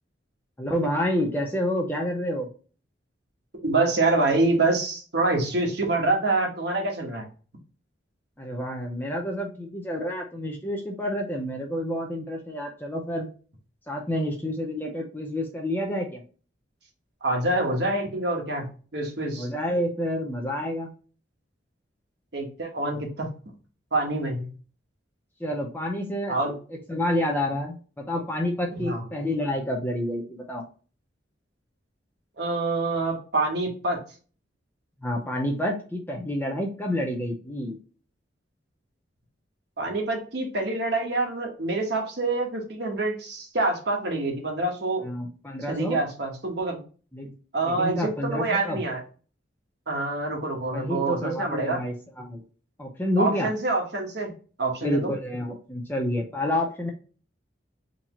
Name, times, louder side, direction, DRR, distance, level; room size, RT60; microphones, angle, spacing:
voice 1, 0.6-2.5 8.4-13.3 13.9-16.2 19.3-20.9 25.4-26.4 26.7-30.6 35.0-37.8 45.0-46.0 47.1-47.3 47.6-48.8 50.7-52.4 52.8-53.5 54.8-56.9, left 1 dB, 10° left, 1 dB, 0.6 m, -29 dB
voice 2, 3.6-7.2 17.2-18.6 18.9-19.5 22.3-23.3 23.9-24.5 26.3-26.5 28.8-29.0 32.4-34.0 39.8-45.0 45.7-46.8 47.5-49.0 49.9-51.8 53.2-54.3 54.6-55.1, right 2 dB, 60° right, 1 dB, 1.1 m, -26 dB
3.9 x 2.8 x 2.9 m, 0.38 s
head